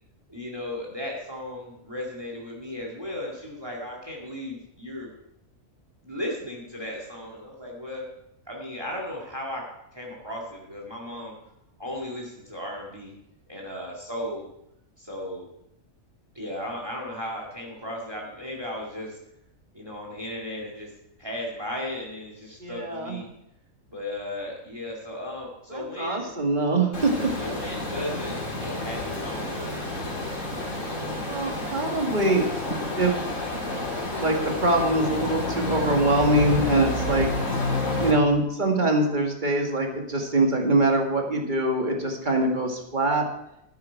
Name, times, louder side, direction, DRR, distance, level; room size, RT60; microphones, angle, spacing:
voice 1, 0.3-5.1 6.0-8.0 8.5-9.7 9.9-11.3 11.8-13.1 13.5-14.4 15.0-15.5 16.3-19.2 19.7-20.9 21.2-23.3 23.9-26.3 27.4-30.1, left 1 dB, 20° right, -1 dB, 2.2 m, -35 dB
voice 2, 22.6-23.2 25.7-27.3 31.3-32.5 32.9-33.2 34.2-37.3 38.0-43.3, right 2 dB, 35° right, 2 dB, 1.9 m, -23 dB
sound 1, 26.9-38.1, left 2 dB, 65° left, 3.8 m, -30 dB
12.5 x 9.7 x 4.6 m, 0.80 s
omnidirectional pair, 1.4 m